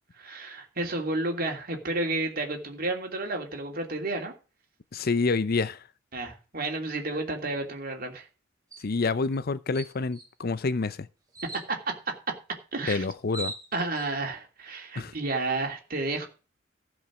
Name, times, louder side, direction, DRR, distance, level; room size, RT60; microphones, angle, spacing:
voice 1, 0.2-4.3 6.1-8.3 11.7-11.8 12.1-12.2 12.7-13.0 13.7-16.3, right 2 dB, 50° right, 2.9 m, -31 dB
voice 2, 4.9-5.8 8.8-11.1 12.9-13.5 15.0-15.1, left 4 dB, 50° left, 0.6 m, -27 dB
sound 1, 8.7-8.9 9.3-9.4 9.7-10.3 11.3-11.7 12.8-12.9 13.1-14.1, right 2 dB, 20° right, 2.9 m, -39 dB
15.0 x 5.2 x 6.2 m
head